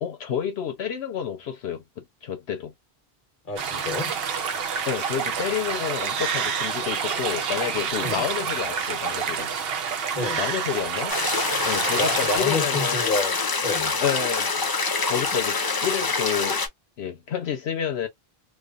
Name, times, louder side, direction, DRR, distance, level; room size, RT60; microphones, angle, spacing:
voice 1, 0.0-2.7 4.9-9.5 10.4-11.2 11.6-13.2 14.0-14.5 15.1-16.6 17.0-18.1, left 8 dB, 85° left, 1.0 m, -29 dB
voice 2, 3.4-4.2 8.0-8.2 10.1-10.4 11.9-14.0, left 3 dB, 55° left, 1.2 m, -29 dB
sound 1, 3.6-12.4, right 6 dB, 70° right, 0.9 m, -28 dB
sound 2, 11.1-16.7, left 4 dB, 35° left, 0.4 m, -25 dB
2.9 x 2.3 x 2.3 m
omnidirectional pair, 1.1 m